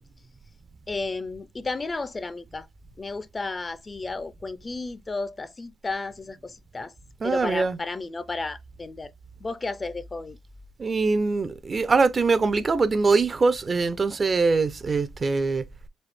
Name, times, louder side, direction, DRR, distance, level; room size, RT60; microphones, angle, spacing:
voice 1, 0.9-2.7 3.0-6.9 7.2-9.1 9.4-10.4, left 3 dB, 25° left, 0.4 m, -33 dB
voice 2, 7.2-7.8 10.8-15.6, right 4 dB, 35° right, 0.4 m, -23 dB
4.1 x 2.7 x 3.3 m
cardioid pair, 90°, 0 cm